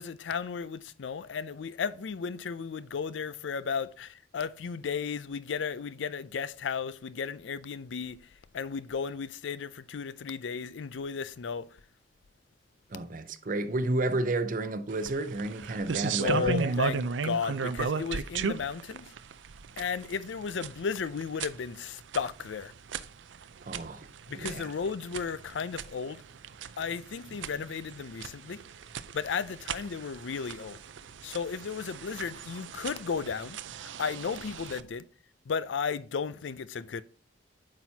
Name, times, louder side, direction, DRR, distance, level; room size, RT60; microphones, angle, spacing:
voice 1, 0.0-8.2 8.5-11.8 16.0-19.1 19.8-22.7 24.3-26.2 26.8-28.6 29.1-30.8 31.2-33.6 34.0-35.0 35.5-37.0, left 6 dB, 85° left, 0.5 m, -34 dB
voice 2, 12.9-16.7 23.6-24.1 24.3-24.7, right 2 dB, 45° right, 0.6 m, -31 dB
sound 1, 14.9-34.8, right 5 dB, 90° right, 0.5 m, -37 dB
8.7 x 5.9 x 2.8 m
head